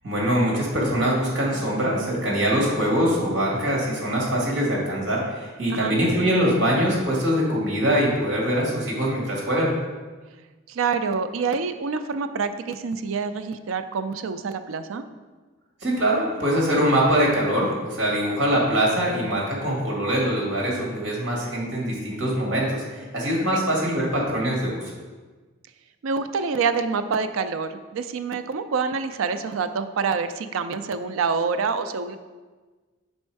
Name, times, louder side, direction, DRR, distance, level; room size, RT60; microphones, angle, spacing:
voice 1, 0.0-9.7 15.8-24.8, equal, 60° right, -3 dB, 2.0 m, -23 dB
voice 2, 10.7-15.0 23.5-23.6 26.0-32.2, right 5 dB, 85° right, 10 dB, 0.4 m, -26 dB
5.3 x 4.3 x 4.6 m, 1.3 s
head